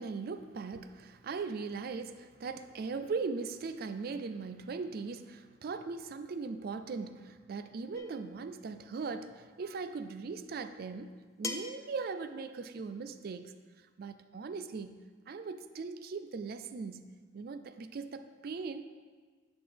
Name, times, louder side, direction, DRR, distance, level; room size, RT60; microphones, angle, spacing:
voice 1, 0.0-13.5 14.0-18.8, right 4 dB, 55° right, 10 dB, 0.4 m, -39 dB
sound 1, 7.9-8.3 9.8-9.9 11.4-11.9, left 3 dB, 15° left, 0.4 m, -40 dB
9.6 x 5.9 x 3.4 m, 1.5 s
head